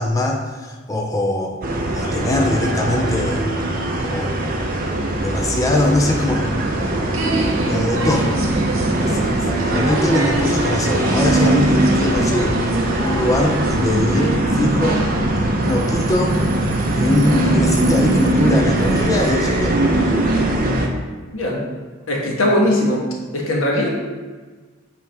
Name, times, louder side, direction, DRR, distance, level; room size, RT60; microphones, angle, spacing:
voice 1, 0.0-1.6 1.9-3.4 4.0-4.4 5.2-6.6 7.6-8.3 9.1-12.6 13.0-15.0 15.6-16.4 16.9-19.8, left 2 dB, 15° left, 1 dB, 0.5 m, -21 dB
sound 1, 1.6-20.9, right 1 dB, 45° right, 0.7 m, -20 dB
sound 2, 6.6-14.4, right 2 dB, 85° right, 0.9 m, -28 dB
voice 2, 21.3-21.6 22.1-23.1 23.3-23.9, left 1 dB, 85° left, -2 dB, 1.3 m, -19 dB
8.1 x 3.6 x 3.4 m, 1.4 s
head